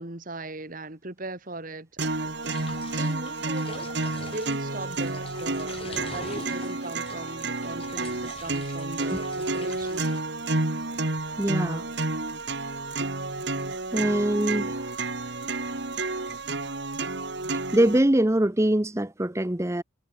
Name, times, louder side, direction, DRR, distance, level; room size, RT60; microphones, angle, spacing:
voice 1, 0.0-10.2, right 2 dB, 40° right, 2.1 m, -39 dB
sound 1, 2.0-18.0, right 2 dB, 55° right, 2.1 m, -30 dB
sound 2, 2.4-10.2, left 3 dB, 30° left, 7.4 m, -44 dB
voice 2, 11.4-11.9 13.9-14.9 17.7-19.8, right 1 dB, 15° right, 0.7 m, -23 dB
head